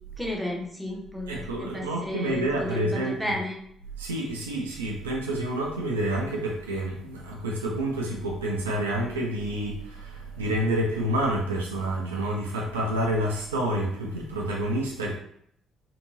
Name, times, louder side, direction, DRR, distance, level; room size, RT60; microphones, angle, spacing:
voice 1, 0.2-3.6, left 1 dB, ahead, -2 dB, 0.8 m, -33 dB
voice 2, 1.3-3.4 4.0-15.1, right 1 dB, 80° right, -2 dB, 0.4 m, -28 dB
2.8 x 2.6 x 2.6 m, 0.68 s
figure-of-eight pair, 45°, 0 cm